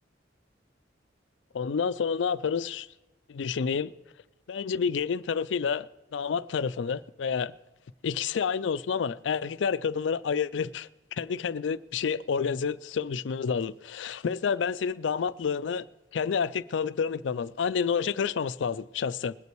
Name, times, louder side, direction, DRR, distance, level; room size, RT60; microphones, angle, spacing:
voice 1, 1.5-2.9 3.3-3.9 4.5-7.5 8.0-15.9 16.1-19.3, left 6 dB, 75° left, 0.4 m, -29 dB
20.5 x 8.3 x 4.6 m
head